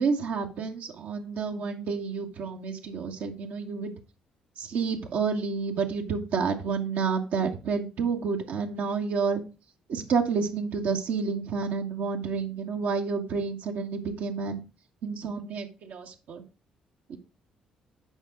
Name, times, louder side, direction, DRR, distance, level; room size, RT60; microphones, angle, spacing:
voice 1, 0.0-3.9 4.6-9.4 9.9-14.6 15.0-16.4 17.1-17.2, right 5 dB, 60° right, 1 dB, 1.5 m, -29 dB
9.0 x 5.5 x 4.9 m, 0.31 s
figure-of-eight pair, 45°, 3 cm